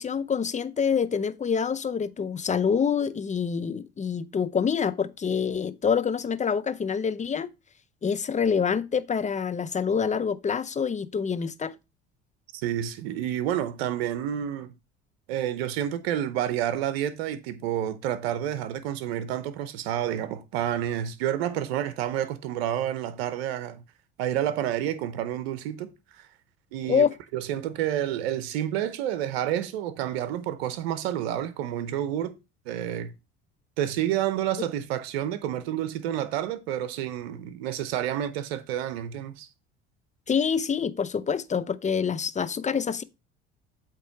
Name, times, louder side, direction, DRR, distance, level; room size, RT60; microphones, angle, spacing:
voice 1, 0.0-7.5 8.0-11.8 26.8-27.1 40.3-43.0, left 6 dB, 25° left, 0.6 m, -26 dB
voice 2, 12.6-14.7 15.3-23.8 24.2-26.3 26.7-27.1 27.3-32.4 32.7-33.1 33.8-39.5, right 11 dB, 80° right, 0.8 m, -29 dB
8.1 x 3.0 x 5.8 m
hypercardioid pair, 70°, 31 cm